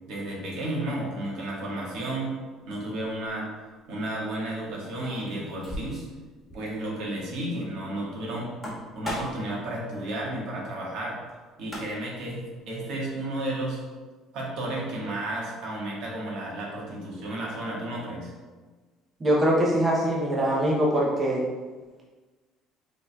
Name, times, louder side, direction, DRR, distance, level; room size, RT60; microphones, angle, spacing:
voice 1, 0.1-2.3 2.7-3.5 3.9-6.0 6.5-11.2 11.6-13.8 14.3-18.3, right 1 dB, 75° right, -3 dB, 1.3 m, -32 dB
sound 1, 4.8-6.2 6.5-6.6 6.9-7.0 8.4-9.5 11.3-11.4 11.6-12.2, left 1 dB, 10° left, 1.3 m, -37 dB
voice 2, 19.2-21.4, right 1 dB, 25° right, -3 dB, 0.6 m, -23 dB
5.2 x 3.3 x 2.2 m, 1.3 s
cardioid pair, 130°, 0 cm